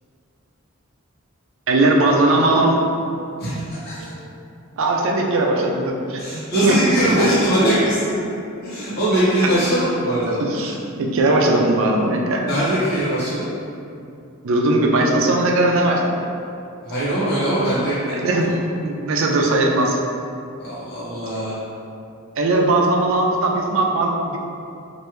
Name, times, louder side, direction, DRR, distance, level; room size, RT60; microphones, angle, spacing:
voice 1, 1.7-2.8 4.0-4.1 4.8-6.8 9.4-9.5 10.4-12.4 14.4-16.3 18.1-18.5 18.8-20.0 22.4-24.4, right 2 dB, 60° right, 0 dB, 0.4 m, -19 dB
voice 2, 3.4-4.1 6.2-8.3 8.6-10.7 12.4-13.5 16.8-18.1 20.6-21.6, right 1 dB, 50° left, -10 dB, 1.2 m, -21 dB
3.2 x 2.5 x 3.0 m, 2.6 s
head